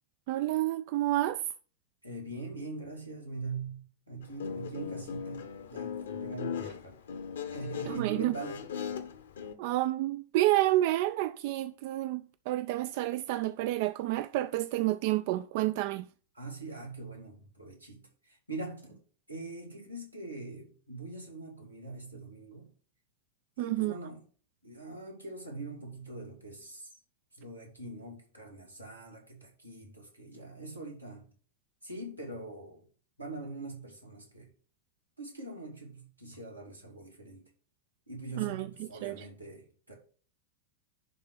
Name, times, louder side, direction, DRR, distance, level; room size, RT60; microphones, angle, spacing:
voice 1, 0.3-1.4 7.9-8.3 9.6-16.1 23.6-24.0 38.4-39.3, right 16 dB, 50° right, 0.3 m, -29 dB
voice 2, 2.0-7.0 7.5-8.6 16.3-19.0 19.3-22.7 23.6-24.2 24.6-26.9 27.3-31.2 31.8-32.8 33.2-34.5 35.2-37.4 38.1-39.9, right 3 dB, 90° right, 2.7 m, -43 dB
Guitar, 4.2-9.5, left 7 dB, 65° left, 1.0 m, -38 dB
11.0 x 3.7 x 6.0 m
figure-of-eight pair, 90°, 0 cm